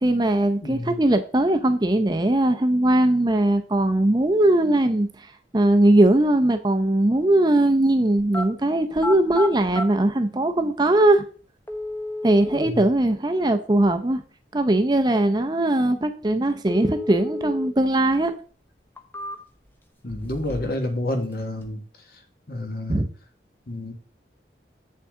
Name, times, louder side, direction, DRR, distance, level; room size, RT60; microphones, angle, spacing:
voice 1, 0.0-5.1 5.5-11.2 12.2-14.2 14.5-18.3 22.9-23.1, right 1 dB, 25° right, 8 dB, 0.6 m, -20 dB
voice 2, 0.6-1.0 12.5-12.9 20.0-21.8 22.5-23.0 23.7-23.9, left 1 dB, 55° left, 4 dB, 1.6 m, -29 dB
sound 1, 8.2-8.5 8.9-9.9 10.9-11.0 11.7-12.7 16.7-17.7 18.1-18.2 18.8-19.7 20.1-20.8 21.1-21.7, left 1 dB, 10° left, 0.9 m, -32 dB
8.3 x 7.1 x 3.6 m, 0.41 s
head